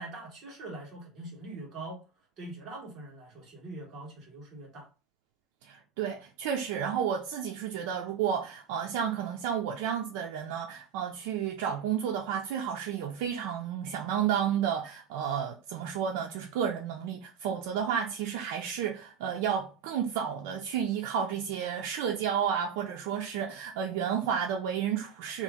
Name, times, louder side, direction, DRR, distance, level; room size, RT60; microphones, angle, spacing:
voice 1, 0.0-2.0 2.4-4.9, right 2 dB, 40° right, 1.5 m, -43 dB
voice 2, 5.6-25.4, right 8 dB, 85° right, 0.5 m, -31 dB
2.9 x 2.4 x 3.6 m
cardioid pair, 155°, 0 cm